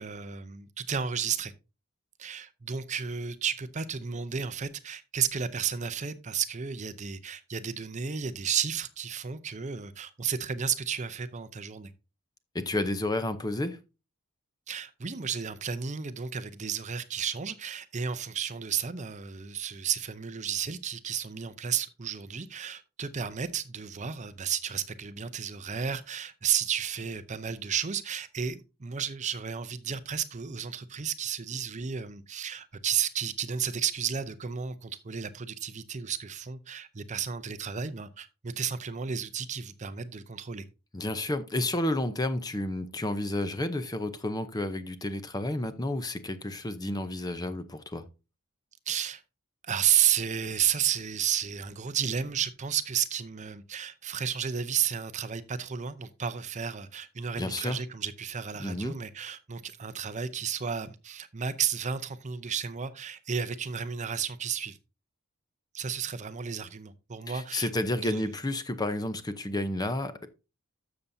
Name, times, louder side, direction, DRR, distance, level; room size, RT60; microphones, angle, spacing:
voice 1, 0.0-1.5 2.2-11.9 14.7-40.7 48.9-49.2 49.6-64.8 65.7-67.7 68.0-68.3, right 8 dB, 30° right, 0.6 m, -32 dB
voice 2, 12.5-13.8 40.9-48.0 57.4-57.8 58.6-58.9 67.3-70.3, left 1 dB, 15° left, 0.6 m, -31 dB
12.5 x 6.9 x 2.7 m
head